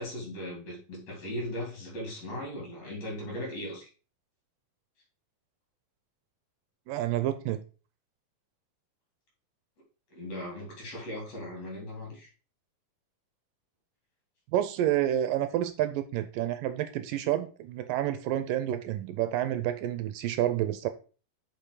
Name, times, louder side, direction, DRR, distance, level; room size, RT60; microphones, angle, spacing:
voice 1, 0.0-3.9 10.1-12.3, left 1 dB, 45° left, 4.3 m, -38 dB
voice 2, 6.9-7.6 14.5-20.9, right 12 dB, 80° right, 2.2 m, -29 dB
6.9 x 5.6 x 4.9 m
omnidirectional pair, 4.1 m